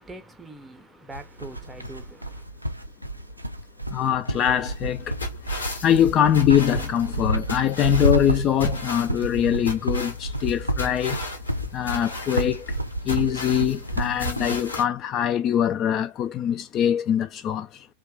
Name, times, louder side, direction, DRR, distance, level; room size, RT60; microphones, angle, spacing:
voice 1, 0.0-2.4, right 2 dB, 10° right, 0.7 m, -43 dB
sound 1, 1.1-14.6, right 1 dB, 85° right, 0.4 m, -30 dB
voice 2, 3.9-5.2 5.8-11.2 11.7-12.8 13.0-17.9, left 10 dB, 30° left, 0.3 m, -23 dB
sound 2, 4.4-14.8, left 3 dB, 75° left, 1.0 m, -35 dB
2.9 x 2.3 x 3.5 m
figure-of-eight pair, 90°, 0 cm